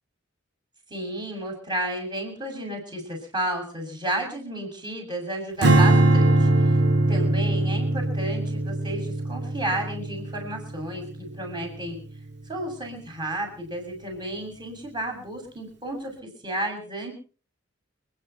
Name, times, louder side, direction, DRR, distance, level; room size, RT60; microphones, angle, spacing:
voice 1, 0.9-6.8 7.1-12.0 12.5-17.1, right 1 dB, 20° right, 2 dB, 7.3 m, -32 dB
Strum, 5.6-12.0, right 2 dB, 60° right, 2.7 m, -22 dB
29.5 x 10.5 x 4.5 m, 0.41 s
head